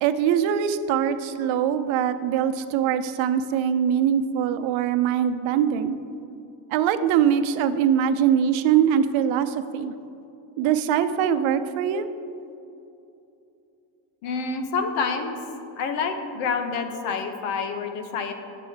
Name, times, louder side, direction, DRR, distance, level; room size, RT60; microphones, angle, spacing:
voice 1, 0.0-6.0 6.7-9.9 10.6-12.1, right 9 dB, 70° right, 11 dB, 0.7 m, -22 dB
voice 2, 14.2-15.4 15.8-18.3, left 5 dB, 90° left, 6 dB, 1.1 m, -28 dB
8.6 x 7.6 x 4.6 m, 2.8 s
cardioid pair, 145°, 48 cm